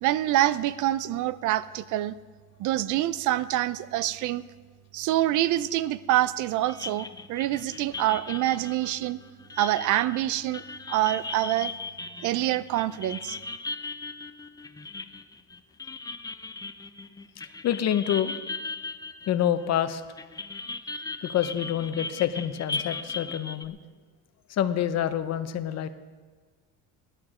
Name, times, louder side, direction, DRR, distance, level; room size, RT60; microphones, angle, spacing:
voice 1, 0.0-2.1 2.6-4.4 4.9-9.2 9.6-11.7 12.2-13.4, right 14 dB, 60° right, 17 dB, 0.5 m, -26 dB
sound 1, 6.7-19.8 20.2-23.6, left 3 dB, 10° left, 0.4 m, -38 dB
voice 2, 17.6-18.3 19.3-20.0 21.2-23.8 24.5-25.9, left 10 dB, 50° left, 11 dB, 0.8 m, -27 dB
16.5 x 11.5 x 5.0 m, 1.5 s
cardioid pair, 135°, 33 cm